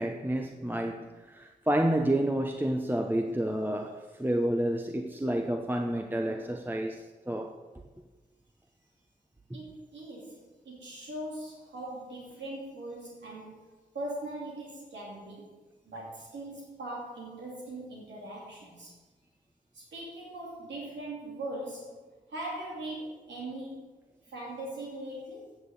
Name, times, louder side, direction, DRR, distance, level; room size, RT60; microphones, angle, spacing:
voice 1, 0.0-7.6, right 1 dB, 10° right, 0.8 m, -30 dB
voice 2, 9.5-13.7 13.9-15.5 15.8-18.9 19.7-22.0 22.3-23.9 24.3-25.6, right 1 dB, 85° right, 2.6 m, -40 dB
9.3 x 6.4 x 8.6 m
cardioid pair, 45°, 18 cm